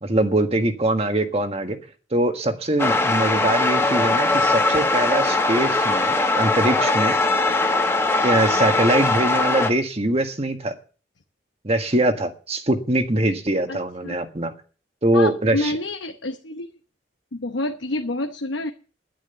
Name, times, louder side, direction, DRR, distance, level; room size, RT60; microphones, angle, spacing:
voice 1, 0.0-1.8 2.1-7.1 8.2-10.7 11.6-14.5 15.0-15.7, right 1 dB, 30° right, 7 dB, 1.5 m, -22 dB
sound 1, 2.8-9.7, left 2 dB, 15° left, 1.2 m, -20 dB
voice 2, 15.1-16.8 17.3-18.7, left 2 dB, 75° left, 5 dB, 1.0 m, -28 dB
11.0 x 10.5 x 7.0 m, 0.38 s
head